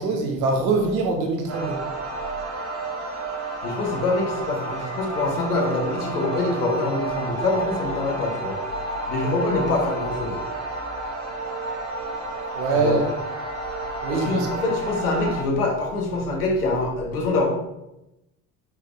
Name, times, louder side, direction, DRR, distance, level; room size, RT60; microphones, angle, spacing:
voice 1, 0.0-1.8 12.5-13.1 14.0-14.5, right 3 dB, 80° right, 3 dB, 1.2 m, -23 dB
sound 1, 1.5-15.4, right 2 dB, 35° right, 1.9 m, -31 dB
voice 2, 3.6-8.6 9.1-10.4 12.7-13.0 14.1-17.5, left 2 dB, 90° left, 1 dB, 1.2 m, -25 dB
5.7 x 4.6 x 3.6 m, 0.91 s
hypercardioid pair, 55°, 44 cm